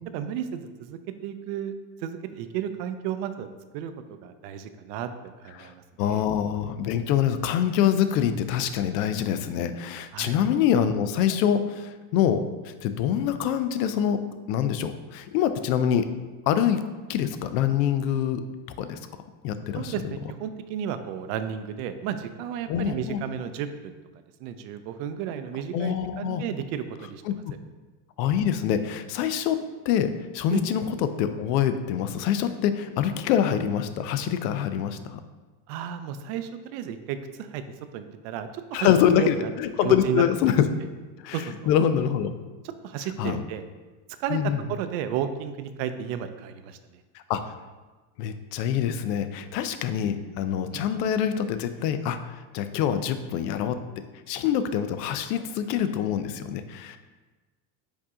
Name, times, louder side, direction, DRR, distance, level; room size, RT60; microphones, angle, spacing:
voice 1, 0.1-1.7 2.0-3.5 3.7-5.1 5.4-6.2 10.1-10.4 19.7-23.9 24.4-27.2 30.5-30.6 35.7-37.6 37.9-39.5 39.8-40.2 41.3-41.5 42.6-43.6 44.2-44.4 44.7-47.0 50.7-50.8, right 9 dB, 70° right, 10 dB, 0.5 m, -33 dB
voice 2, 6.0-16.1 16.5-16.8 17.1-18.4 18.8-19.0 19.4-20.1 22.7-23.2 25.7-26.4 27.3-27.4 28.2-35.2 38.7-40.6 41.2-42.3 43.2-43.4 44.3-44.6 47.1-47.5 48.2-53.8 54.3-57.0, left 9 dB, 80° left, 10 dB, 0.5 m, -25 dB
4.7 x 2.8 x 3.6 m, 1.3 s
supercardioid pair, 105°, 49 cm